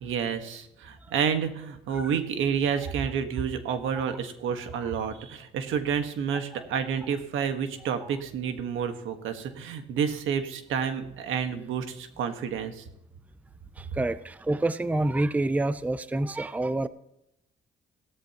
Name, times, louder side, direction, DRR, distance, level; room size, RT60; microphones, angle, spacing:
voice 1, 0.0-12.8, right 7 dB, 80° right, 8 dB, 1.5 m, -29 dB
voice 2, 13.8-16.9, right 2 dB, 5° right, 14 dB, 0.5 m, -27 dB
16.5 x 13.5 x 3.0 m, 0.83 s
cardioid pair, 90°, 20 cm